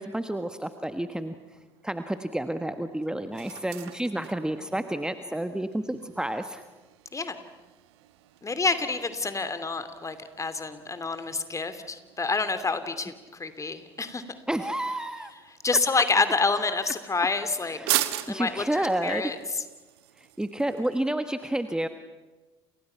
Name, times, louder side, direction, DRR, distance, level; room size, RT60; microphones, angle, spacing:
voice 1, 0.0-1.3 1.8-6.7 14.5-15.3 17.6-19.3 20.2-21.9, right 1 dB, 5° right, 9 dB, 1.5 m, -30 dB
sound 1, 1.4-21.0, right 17 dB, 70° right, 1.5 m, -40 dB
voice 2, 8.4-14.2 15.6-17.8 18.3-19.6, left 4 dB, 20° left, 11 dB, 2.8 m, -28 dB
29.5 x 29.0 x 5.8 m, 1.2 s
figure-of-eight pair, 65°, 14 cm